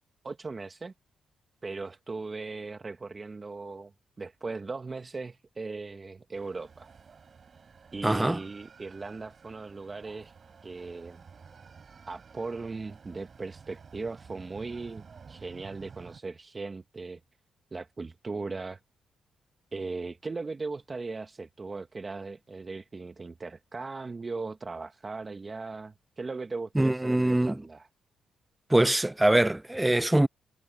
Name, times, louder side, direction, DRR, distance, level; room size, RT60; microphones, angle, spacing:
voice 1, 0.2-0.9 1.6-3.9 4.2-6.9 7.9-10.3 10.6-11.2 12.1-17.2 17.7-18.8 19.7-27.9, right 3 dB, 35° right, 1.5 m, -38 dB
sound 1, 6.3-16.2, right 5 dB, 50° right, 6.6 m, -52 dB
voice 2, 8.0-8.4 26.8-27.6 28.7-30.3, right 1 dB, 10° right, 0.5 m, -23 dB
cardioid pair, 70°, 0 cm